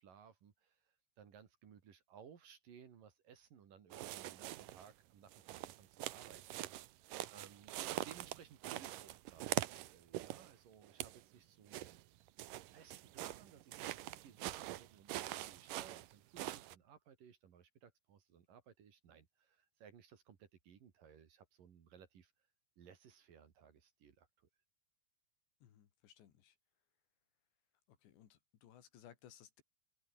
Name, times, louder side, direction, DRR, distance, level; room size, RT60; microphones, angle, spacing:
voice 1, 0.0-6.8 7.3-12.0 12.7-22.3 22.8-24.5, right 7 dB, 55° right, 3.8 m, -61 dB
sound 1, 3.9-4.9 5.3-10.5 10.8-11.2 11.7-16.8, right 15 dB, 75° right, 2.0 m, -44 dB
voice 2, 25.6-26.6 28.0-29.6, left 10 dB, 80° left, 4.7 m, -61 dB
open air
omnidirectional pair, 5.0 m